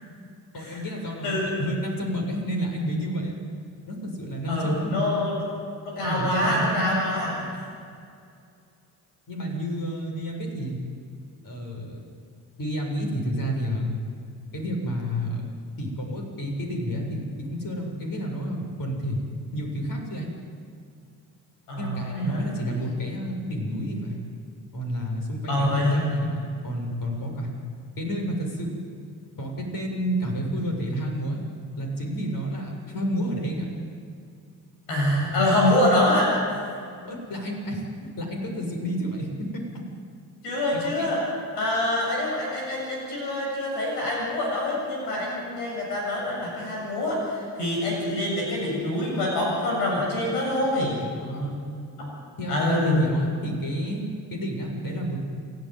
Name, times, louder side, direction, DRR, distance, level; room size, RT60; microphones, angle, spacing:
voice 1, 0.5-3.4 3.9-5.2 6.0-7.6 9.3-10.8 11.4-12.0 12.6-13.9 14.5-15.4 15.8-19.2 19.5-20.3 21.8-24.2 24.7-27.5 28.0-28.7 29.4-31.4 31.8-33.7 37.1-39.6 40.7-41.1 51.2-51.6 52.4-55.2, equal, 45° left, 1 dB, 7.4 m, -30 dB
voice 2, 4.5-5.4 5.8-7.6 21.7-22.4 25.5-26.0 34.9-36.7 40.4-41.2 41.5-50.9 52.0-52.1 52.5-53.1, left 1 dB, 85° left, -3 dB, 7.8 m, -25 dB
28.5 x 15.0 x 9.3 m, 2.4 s
hypercardioid pair, 45°, 46 cm